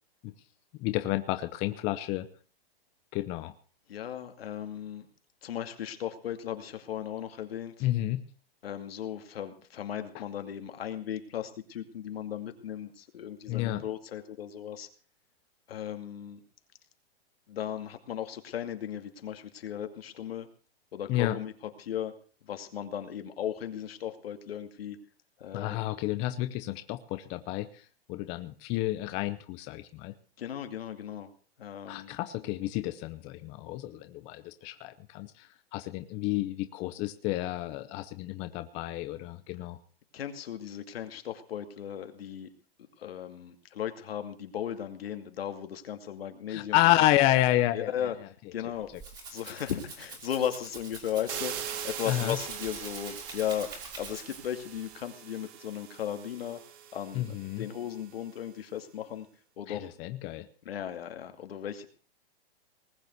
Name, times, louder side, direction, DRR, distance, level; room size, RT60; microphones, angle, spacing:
voice 1, 0.8-2.3 3.1-3.5 7.8-8.2 13.5-13.8 21.1-21.4 25.5-27.8 28.1-30.1 31.9-39.8 46.5-47.9 52.1-52.4 57.1-57.7 59.7-60.5, left 15 dB, 20° left, 10 dB, 0.6 m, -30 dB
voice 2, 3.9-5.1 5.4-7.9 8.6-14.9 15.7-16.4 17.5-20.5 20.9-21.5 21.8-22.2 22.4-25.0 25.4-25.8 30.4-31.3 31.6-32.1 40.1-42.5 43.0-46.8 47.7-48.2 48.5-48.9 49.3-53.7 54.0-56.6 56.9-59.3 59.6-59.9 60.6-61.9, left 10 dB, 75° left, 7 dB, 2.5 m, -36 dB
Rattle (instrument), 48.7-54.6, right 3 dB, 15° right, 2.8 m, -45 dB
sound 1, 51.3-58.1, right 9 dB, 35° right, 1.9 m, -42 dB
19.5 x 7.2 x 8.0 m, 0.42 s
hypercardioid pair, 160°, 30 cm